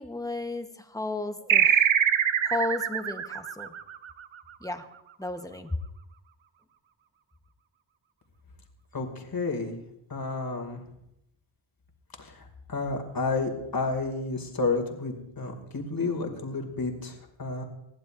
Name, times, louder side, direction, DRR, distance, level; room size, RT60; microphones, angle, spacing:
voice 1, 0.0-1.9 2.4-3.7 4.6-4.9 5.2-5.8, left 2 dB, 5° left, 7 dB, 1.0 m, -33 dB
sound 1, 1.5-4.5, right 9 dB, 80° right, 0.8 m, -24 dB
voice 2, 8.9-9.8 10.1-10.8 12.2-12.4 12.7-17.6, left 3 dB, 50° left, 4 dB, 2.3 m, -31 dB
20.5 x 15.0 x 2.5 m, 0.82 s
wide cardioid pair, 110°, 47 cm